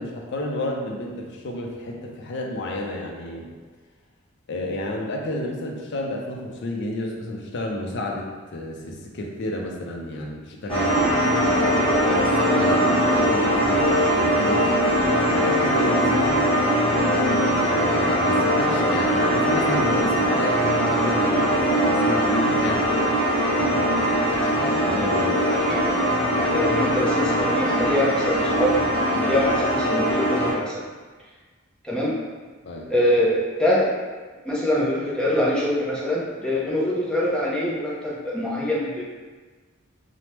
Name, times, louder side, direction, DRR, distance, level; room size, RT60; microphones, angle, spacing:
voice 1, 0.0-3.5 4.5-8.3 8.5-12.8 13.1-14.8 15.3-16.5 17.3-23.1 23.6-25.4 32.6-32.9, left 1 dB, 55° left, 0 dB, 0.4 m, -31 dB
sound 1, 10.7-30.5, equal, 25° left, 0.8 m, -21 dB
voice 2, 25.5-25.9 26.4-30.7 31.8-32.2 32.9-33.9 34.4-39.0, left 1 dB, 5° left, -6 dB, 0.5 m, -24 dB
3.3 x 2.0 x 2.9 m, 1.4 s
head